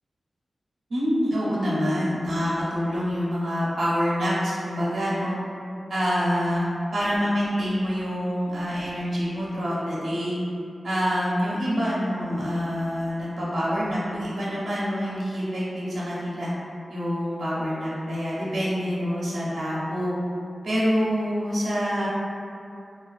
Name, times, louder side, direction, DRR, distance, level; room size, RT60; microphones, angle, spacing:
voice 1, 0.9-5.3 5.9-6.6 6.9-10.4 10.8-16.5 16.9-20.2 20.6-22.1, equal, 75° right, -8 dB, 0.6 m, -26 dB
2.4 x 2.2 x 2.3 m, 2.5 s
wide cardioid pair, 130°, 0 cm